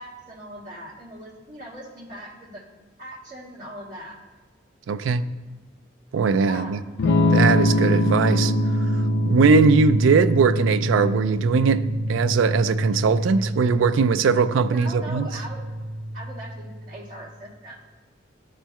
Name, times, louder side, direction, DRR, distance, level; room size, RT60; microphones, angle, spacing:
voice 1, 0.0-2.6 3.0-4.2 6.4-6.8 14.7-15.6 16.1-17.8, right 1 dB, 40° right, 1.9 m, -40 dB
voice 2, 4.9-5.2 6.1-6.8 7.3-11.8 12.1-15.3, right 5 dB, 85° right, 0.3 m, -20 dB
Electric guitar / Strum, 7.0-16.7, left 1 dB, 60° left, 0.5 m, -24 dB
12.0 x 4.4 x 2.3 m
head